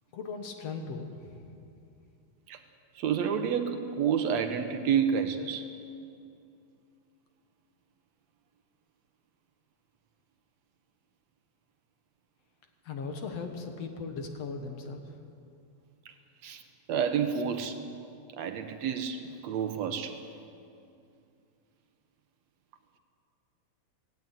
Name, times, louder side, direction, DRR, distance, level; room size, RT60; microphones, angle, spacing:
voice 1, 0.1-1.5 12.8-15.2, left 4 dB, 60° left, 5 dB, 2.4 m, -38 dB
voice 2, 3.0-5.7 16.1-16.2 16.4-16.6 16.9-17.8 18.4-20.2, right 7 dB, 70° right, 8 dB, 2.1 m, -29 dB
17.0 x 16.5 x 9.2 m, 2.5 s
omnidirectional pair, 3.4 m